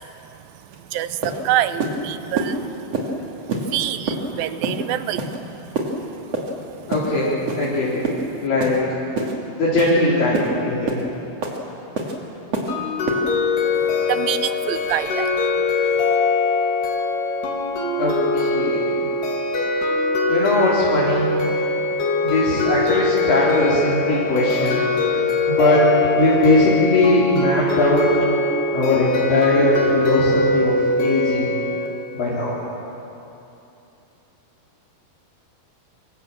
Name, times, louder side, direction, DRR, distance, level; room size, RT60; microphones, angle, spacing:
sound 1, 0.7-0.8 1.2-1.4 1.8-2.0 2.4-2.5 2.9-3.1 3.5-3.7 4.1-4.2 4.6-4.8 5.2-5.4 5.8-5.9 6.3-6.5 6.9-7.1 7.5-7.7 8.0-8.2 8.6-8.8 9.2-9.3 9.8-9.9 10.3-10.5 10.9-11.0 11.4-11.6 12.0-12.1 12.5-12.7 13.1-13.2, right 3 dB, 45° right, 3.3 m, -25 dB
voice 1, 0.9-2.6 3.7-5.4 13.8-15.3, right 12 dB, 75° right, 12 dB, 2.4 m, -25 dB
voice 2, 6.9-8.0 8.4-8.8 9.6-11.0 18.0-18.9 20.3-21.3 22.2-25.1 25.5-28.1 28.7-31.5 32.1-32.6, left 2 dB, 60° left, -8 dB, 5.6 m, -19 dB
sound 2, 12.7-31.9, left 3 dB, 90° left, 4.7 m, -22 dB
25.5 x 25.5 x 7.5 m, 2.9 s
omnidirectional pair, 4.6 m